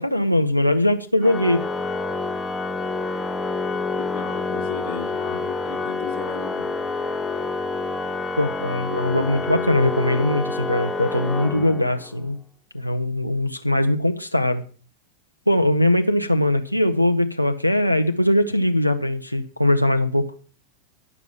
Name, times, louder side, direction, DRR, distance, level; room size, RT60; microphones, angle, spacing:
voice 1, 0.0-1.7 8.4-12.4 12.7-14.6 15.5-20.3, left 1 dB, 90° left, 0.7 m, -21 dB
Organ, 1.2-12.2, left 3 dB, 10° left, 0.8 m, -28 dB
voice 2, 3.7-6.9, left 8 dB, 50° left, 1.0 m, -36 dB
11.0 x 6.0 x 7.3 m
figure-of-eight pair, 90°, 0 cm